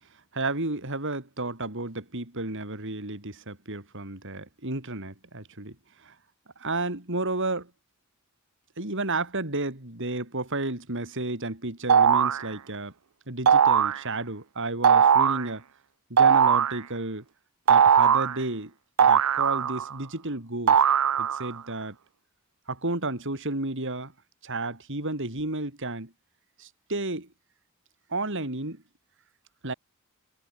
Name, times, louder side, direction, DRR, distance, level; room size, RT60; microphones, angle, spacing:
voice 1, 0.3-5.8 6.0-6.1 6.6-7.7 8.8-12.9 13.3-15.6 16.1-17.2 17.7-18.7 19.0-20.8 21.2-22.0 22.7-24.1 24.4-26.1 26.6-27.3 28.1-28.8 29.6-29.7, right 2 dB, 60° right, 4.6 m, -32 dB
sound 1, 11.9-12.4 13.5-14.0 14.8-15.5 16.2-16.8 17.7-18.4 19.0-19.9 20.7-21.5, right 7 dB, 80° right, 0.6 m, -19 dB
head